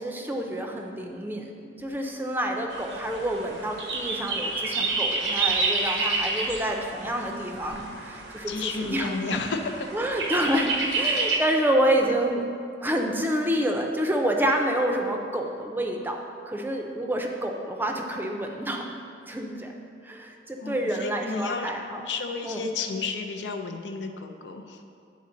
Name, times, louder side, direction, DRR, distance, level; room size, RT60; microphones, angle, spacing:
voice 1, 0.0-1.5 1.8-9.4 9.9-12.4 12.8-18.8 19.3-19.7 20.0-22.1 22.4-22.6, right 1 dB, 10° right, 2 dB, 0.5 m, -28 dB
sound 1, 2.7-11.4, right 3 dB, 80° right, 0.7 m, -29 dB
voice 2, 8.5-9.9 10.3-10.5 20.6-21.7 22.1-24.8, left 4 dB, 90° left, 5 dB, 0.5 m, -32 dB
9.4 x 4.1 x 3.8 m, 2.4 s
head